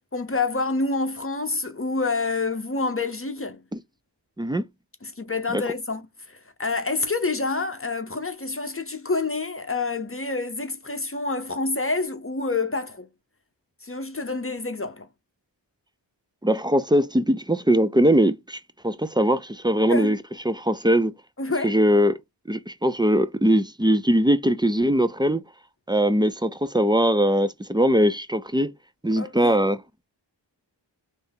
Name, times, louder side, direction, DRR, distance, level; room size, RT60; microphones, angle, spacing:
voice 1, 0.1-3.6 5.0-6.0 6.3-13.1 13.8-15.1 19.9-20.2 21.4-21.7 29.2-29.6, left 3 dB, 30° left, 0.7 m, -27 dB
voice 2, 16.4-18.6 18.8-20.2 20.5-21.1 21.6-22.2 22.5-25.4 25.9-28.7 29.0-29.8, equal, 10° right, 0.4 m, -21 dB
3.4 x 2.7 x 3.5 m
wide cardioid pair, 50°, 45 cm